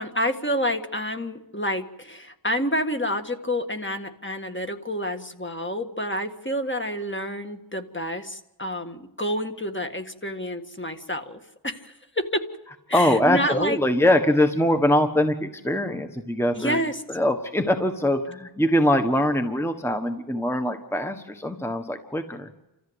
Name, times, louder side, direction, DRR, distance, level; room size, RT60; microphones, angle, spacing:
voice 1, 0.0-11.4 11.6-12.4 12.9-13.8 16.6-17.0, equal, 25° left, 6 dB, 1.8 m, -28 dB
voice 2, 12.9-16.8 17.1-22.5, left 1 dB, 5° left, 6 dB, 1.4 m, -23 dB
29.5 x 14.5 x 8.1 m, 0.97 s
wide cardioid pair, 60°, 47 cm